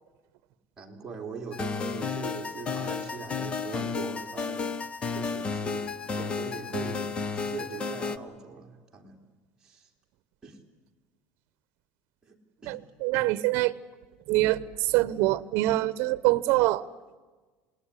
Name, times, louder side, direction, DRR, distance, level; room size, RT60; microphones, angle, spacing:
voice 1, 0.8-4.7 5.1-7.1 7.3-9.2 9.6-9.9 10.4-10.6 12.2-12.4 12.6-12.8 13.1-13.2, right 5 dB, 15° right, 0 dB, 3.4 m, -41 dB
sound 1, 1.5-8.2, left 5 dB, 25° left, 0.9 m, -32 dB
voice 2, 12.7-13.7 14.3-16.9, right 17 dB, 60° right, 17 dB, 1.0 m, -25 dB
27.5 x 20.0 x 9.9 m, 1.3 s
cardioid pair, 155°, 4 cm